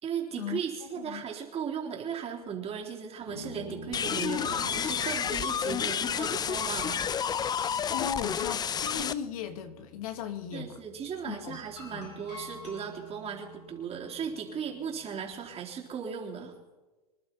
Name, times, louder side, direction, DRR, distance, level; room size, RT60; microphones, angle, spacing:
voice 1, 0.0-7.0 10.5-16.5, right 7 dB, 30° right, 0 dB, 3.8 m, -37 dB
sound 1, 3.2-15.7, left 1 dB, 85° left, 4.6 m, -48 dB
sound 2, 3.9-9.1, left 8 dB, 20° left, 0.6 m, -30 dB
voice 2, 7.9-10.7 11.2-11.6 11.9-12.1, left 8 dB, 65° left, 7 dB, 2.0 m, -36 dB
25.5 x 11.5 x 4.3 m, 1.2 s
hypercardioid pair, 100°, 20 cm